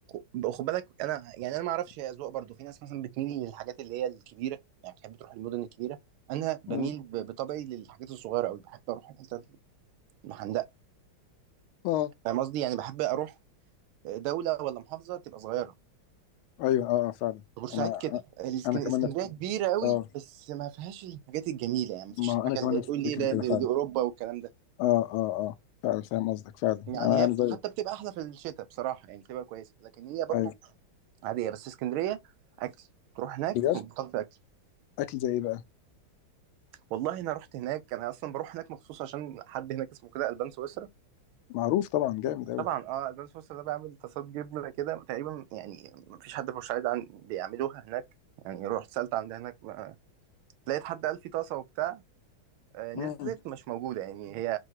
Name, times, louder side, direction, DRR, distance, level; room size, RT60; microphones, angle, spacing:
voice 1, 0.3-4.6 4.8-6.0 6.3-9.4 10.2-10.7 12.2-13.3 14.0-15.7 17.6-24.5 26.9-30.4 31.2-32.2 32.6-32.7 33.2-34.3 36.9-40.9 42.6-48.0 48.4-49.9 50.7-52.0 52.7-54.6, right 13 dB, 85° right, 1.4 m, -34 dB
voice 2, 16.6-17.4 17.7-18.0 18.6-19.1 19.8-20.0 22.2-22.8 23.2-23.7 24.8-25.5 25.8-27.6 30.3-30.5 33.5-33.8 35.0-35.6 41.5-42.6 52.9-53.3, left 13 dB, 85° left, 1.4 m, -28 dB
4.6 x 2.2 x 4.5 m
omnidirectional pair, 2.3 m